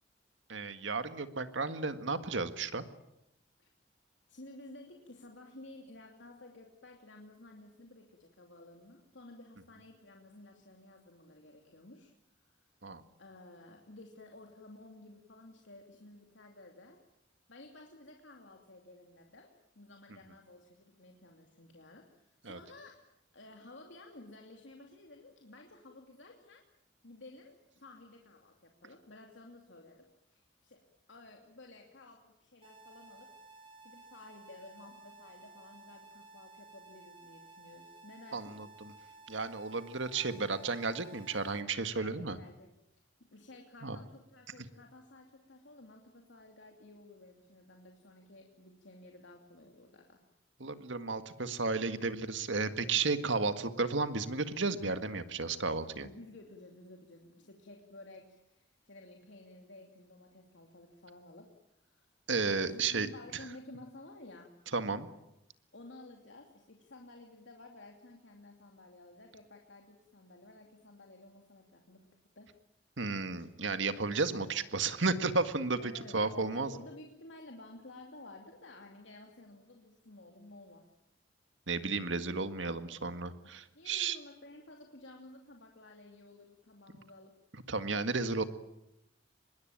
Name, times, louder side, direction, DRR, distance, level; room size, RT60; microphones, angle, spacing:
voice 1, 0.5-2.8 12.8-13.0 22.5-22.6 38.3-38.9 39.3-42.4 43.8-44.0 50.6-56.1 62.3-63.1 64.7-65.1 73.0-75.8 76.1-76.7 81.7-84.2 87.7-88.4, right 4 dB, 80° right, 10 dB, 1.8 m, -33 dB
voice 2, 4.3-12.1 12.4-12.6 13.2-17.0 17.5-23.0 23.3-26.6 27.0-30.8 31.1-33.3 33.8-38.6 41.9-42.7 43.3-50.2 56.0-61.5 61.8-62.1 62.6-64.5 65.7-72.1 72.4-72.5 75.8-80.9 83.7-87.4, left 2 dB, 75° left, 2 dB, 2.8 m, -53 dB
sound 1, 32.6-41.6, right 3 dB, 25° right, 3.2 m, -55 dB
25.0 x 21.5 x 9.0 m, 0.83 s
head